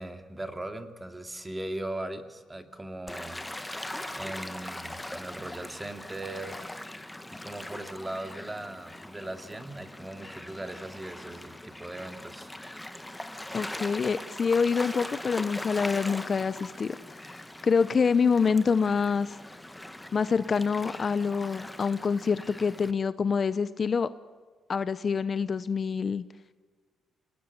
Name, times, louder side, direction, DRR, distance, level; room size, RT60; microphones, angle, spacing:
voice 1, 0.0-3.4 4.1-6.6 7.3-12.5, right 1 dB, 15° right, 7 dB, 2.5 m, -39 dB
Gull seagull / Waves surf, 3.1-22.9, left 1 dB, 10° left, 1.5 m, -41 dB
voice 2, 13.5-17.4 17.6-19.4 20.1-24.1 24.7-26.2, left 5 dB, 40° left, 14 dB, 0.8 m, -26 dB
26.5 x 19.0 x 9.8 m, 1.5 s
cardioid pair, 90°, 0 cm